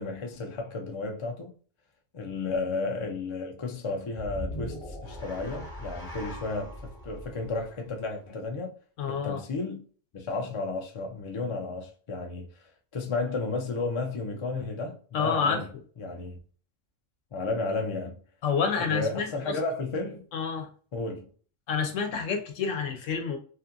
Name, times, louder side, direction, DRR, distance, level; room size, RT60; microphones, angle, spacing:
voice 1, 0.0-1.5 2.1-6.7 7.0-8.7 9.1-9.8 10.1-12.5 12.9-15.7 16.0-16.4 17.3-18.1 18.8-20.2 20.9-21.3, left 3 dB, 55° left, 0.3 m, -33 dB
sound 1, 4.2-8.5, equal, 25° left, 1.0 m, -40 dB
voice 2, 9.0-9.4 15.1-15.6 18.4-19.5 20.3-20.7 21.7-23.4, left 6 dB, 80° left, 1.0 m, -28 dB
2.7 x 2.5 x 2.5 m
omnidirectional pair, 1.3 m